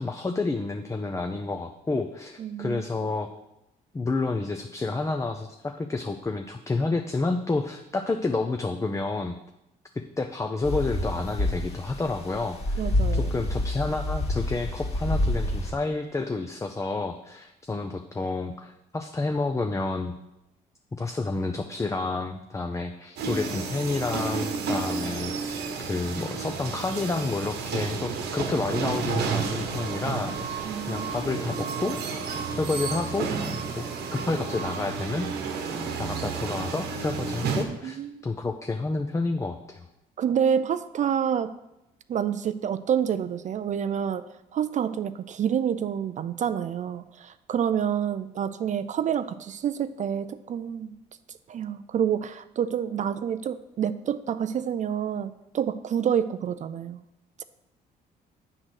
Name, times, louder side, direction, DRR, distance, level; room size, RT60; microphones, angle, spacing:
voice 1, 0.0-3.3 3.9-9.4 9.9-20.1 21.0-32.0 32.6-33.9 34.1-35.3 36.0-39.9, left 3 dB, 20° left, 6 dB, 0.5 m, -30 dB
voice 2, 2.4-2.8 12.8-13.3 30.6-31.3 37.4-38.3 40.2-41.5 42.1-44.2 44.5-50.9 51.5-57.0 57.4-57.5, right 8 dB, 45° right, 12 dB, 0.4 m, -28 dB
sound 1, 10.6-15.7, left 1 dB, 40° left, 1.8 m, -28 dB
sound 2, 23.2-37.6, right 5 dB, 80° right, 1.2 m, -31 dB
8.7 x 3.8 x 6.3 m, 0.89 s
cardioid pair, 85°, 17 cm